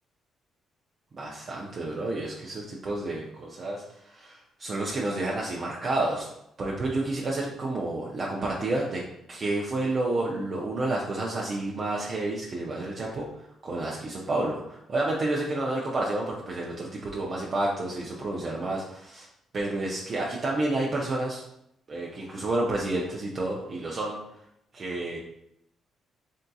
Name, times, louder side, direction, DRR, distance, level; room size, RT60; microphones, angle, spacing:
voice 1, 1.1-6.3 6.6-9.0 9.3-13.3 13.6-19.3 19.5-21.4 21.9-24.2 24.7-25.2, right 2 dB, 45° right, -3 dB, 0.5 m, -30 dB
3.6 x 2.6 x 2.3 m, 0.79 s
cardioid pair, 90°, 0 cm